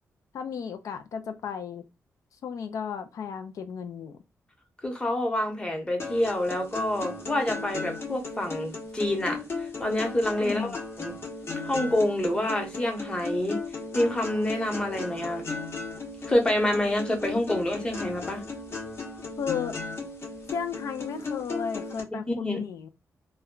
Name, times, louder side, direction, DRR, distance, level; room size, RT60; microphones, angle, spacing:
voice 1, 0.3-1.8 2.4-4.2 10.4-10.8 19.4-19.8 20.5-22.9, left 7 dB, 75° left, 0.4 m, -34 dB
voice 2, 4.8-11.1 11.6-13.6 13.9-15.5 16.3-18.4 22.3-22.6, left 1 dB, 15° left, 0.9 m, -27 dB
sound 1, 6.0-22.0, left 3 dB, 45° left, 0.8 m, -36 dB
2.1 x 2.1 x 3.7 m
wide cardioid pair, 125°, 6 cm